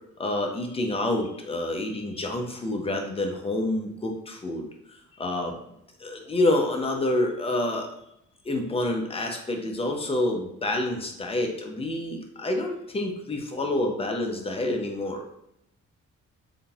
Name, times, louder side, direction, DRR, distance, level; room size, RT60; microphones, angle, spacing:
voice 1, 0.2-5.5 6.0-8.0 8.4-15.3, left 1 dB, 20° left, 2 dB, 0.6 m, -28 dB
3.6 x 2.7 x 2.4 m, 0.78 s
cardioid pair, 90°, 30 cm